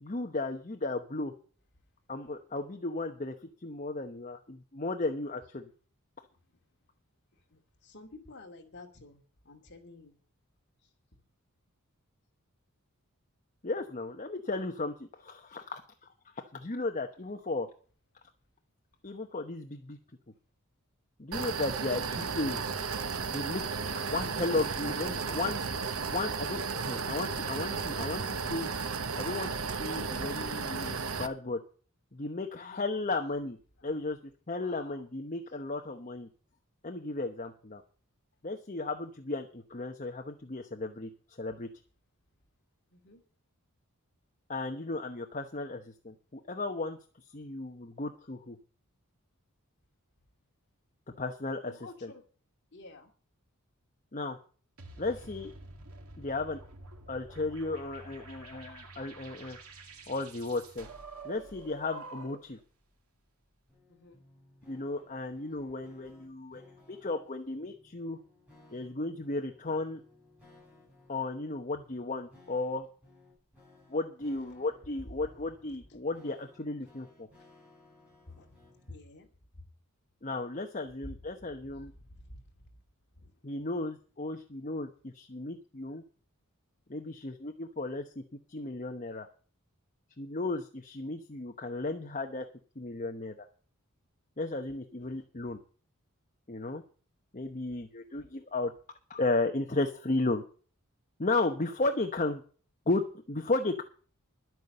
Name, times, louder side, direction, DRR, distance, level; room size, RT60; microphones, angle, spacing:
voice 1, 0.0-1.3 2.1-3.3 3.6-5.7 13.6-15.8 16.4-17.7 19.0-20.0 21.2-22.6 23.3-23.6 23.9-28.7 29.1-29.5 29.8-31.6 32.1-33.6 33.8-34.2 34.5-36.3 36.8-37.8 38.4-41.1 41.4-41.7 44.5-47.0 47.3-48.6 51.2-52.1 54.1-54.4 55.0-55.5 56.2-56.6 57.1-59.6 60.1-60.9 61.2-62.6 64.7-66.6 66.9-68.2 68.7-70.0 71.1-72.9 73.9-77.3 80.2-81.9 83.4-86.0 86.9-88.2 88.5-89.3 90.2-92.5 92.8-93.4 94.4-95.6 96.5-96.8 97.3-98.7 99.1-100.4 101.2-102.4 102.9-103.8, left 2 dB, 35° left, 4 dB, 1.0 m, -34 dB
voice 2, 7.9-9.2 9.5-10.1 32.6-32.8 34.6-35.0 43.0-43.2 51.8-52.2 52.7-53.1 63.9-64.2 78.4-78.5 78.9-79.3, left 3 dB, 50° left, 2 dB, 2.7 m, -50 dB
sound 1, 21.3-31.3, right 5 dB, 70° right, 1.1 m, -34 dB
sound 2, 54.8-62.6, right 3 dB, 85° right, 2.4 m, -48 dB
sound 3, 63.7-79.0, left 2 dB, 5° right, 7.7 m, -60 dB
11.0 x 9.2 x 6.7 m, 0.41 s
head